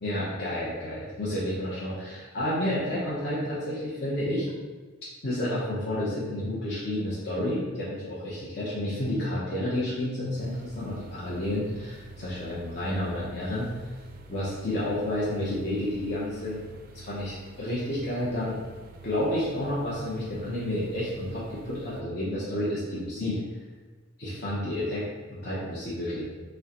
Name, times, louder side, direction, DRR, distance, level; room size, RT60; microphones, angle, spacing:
voice 1, 0.0-4.5 5.2-13.7 14.3-16.6 16.9-18.6 19.0-23.4 24.2-26.2, left 1 dB, 55° left, -9 dB, 0.9 m, -30 dB
sound 1, 10.4-22.0, right 2 dB, 45° right, 0.3 m, -48 dB
6.2 x 2.2 x 2.9 m, 1.3 s
head